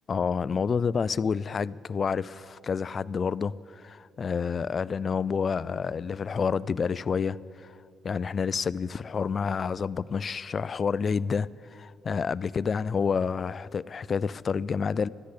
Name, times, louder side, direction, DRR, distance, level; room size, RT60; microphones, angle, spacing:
voice 1, 0.1-7.8 8.0-15.1, left 6 dB, 45° left, 0.4 m, -29 dB
13.0 x 10.0 x 9.8 m
cardioid pair, 90°, 0 cm